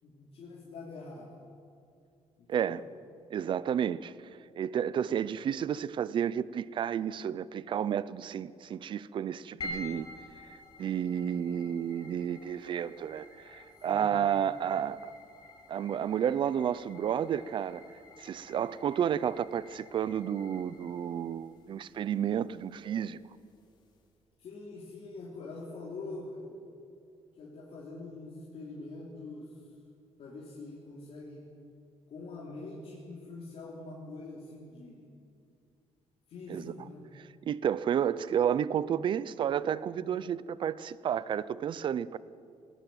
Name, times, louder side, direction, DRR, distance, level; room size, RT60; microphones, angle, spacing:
voice 1, 0.0-1.3 2.4-2.8 13.8-14.2 24.4-26.6 27.4-29.6 30.2-31.4 32.1-35.1 36.3-37.0, left 3 dB, 55° left, 3.3 m, -44 dB
voice 2, 2.5-2.8 3.3-4.1 4.5-10.1 10.8-15.1 15.7-17.8 18.2-23.2 36.5-36.7 37.2-42.2, right 9 dB, 45° right, 0.6 m, -31 dB
sound 1, 9.6-24.1, left 2 dB, 35° left, 3.9 m, -50 dB
19.5 x 18.5 x 9.1 m
cardioid pair, 180°, 12 cm